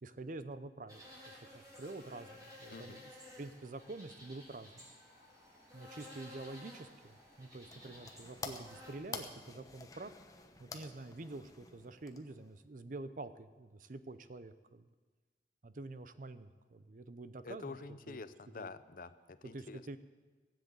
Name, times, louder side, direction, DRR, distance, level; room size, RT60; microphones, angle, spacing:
voice 1, 0.0-3.0 3.4-4.9 5.7-10.1 10.6-14.9 15.6-17.8 18.1-18.2 18.6-18.7 19.4-20.0, right 2 dB, 45° right, 12 dB, 0.6 m, -47 dB
sound 1, 0.9-8.9, left 1 dB, 20° right, 3.8 m, -55 dB
voice 2, 2.7-3.0 17.4-20.0, left 3 dB, 50° left, 13 dB, 0.6 m, -48 dB
sound 2, 7.3-12.6, left 4 dB, 20° left, 0.9 m, -49 dB
16.0 x 7.8 x 8.1 m, 1.4 s
head